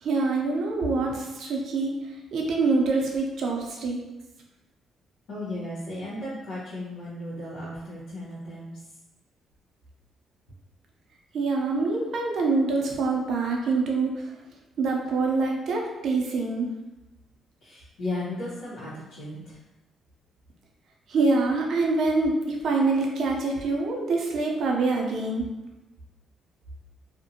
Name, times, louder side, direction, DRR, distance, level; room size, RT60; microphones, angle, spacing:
voice 1, 0.0-1.9 2.3-4.0 11.3-14.2 14.8-16.7 21.1-25.4, right 3 dB, 65° right, 0 dB, 0.5 m, -25 dB
voice 2, 5.3-8.7 17.6-19.6, left 1 dB, 90° left, -10 dB, 0.8 m, -35 dB
2.5 x 2.1 x 2.7 m, 1.0 s
cardioid pair, 90°, 0 cm